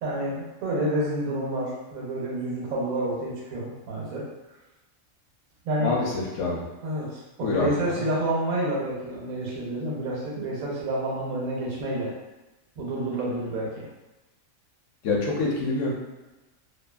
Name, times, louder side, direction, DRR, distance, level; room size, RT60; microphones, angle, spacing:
voice 1, 0.0-4.3 5.6-5.9 6.8-12.1 12.8-13.8, right 1 dB, 85° right, -4 dB, 1.2 m, -29 dB
voice 2, 7.4-8.1 15.0-15.9, left 3 dB, 70° left, -3 dB, 0.9 m, -26 dB
2.7 x 2.4 x 2.3 m, 1.1 s
omnidirectional pair, 1.4 m